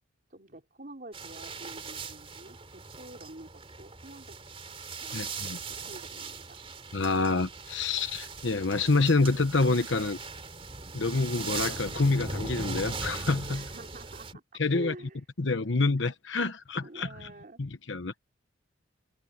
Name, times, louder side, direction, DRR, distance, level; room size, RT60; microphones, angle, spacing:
voice 1, 0.3-2.6 2.9-4.6 5.0-6.6 13.5-15.2 16.8-17.6, right 1 dB, 45° right, 4.0 m, -47 dB
sound 1, 1.1-14.3, right 4 dB, 30° right, 3.2 m, -39 dB
voice 2, 5.1-5.6 6.9-10.2 10.9-13.6 14.6-14.9 15.4-17.3 17.6-18.2, left 3 dB, 65° left, 1.1 m, -27 dB
head